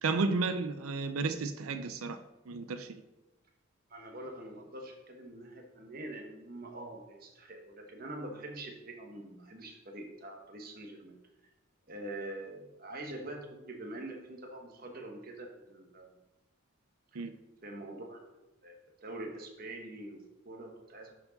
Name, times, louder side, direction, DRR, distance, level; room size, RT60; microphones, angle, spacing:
voice 1, 0.0-2.2 2.5-3.0 17.1-17.3, right 3 dB, 85° right, 0.5 m, -32 dB
voice 2, 3.9-11.2 11.9-16.2 17.1-17.2 17.6-18.2 18.6-21.1, right 1 dB, 45° right, 1.2 m, -44 dB
11.0 x 4.8 x 4.0 m
head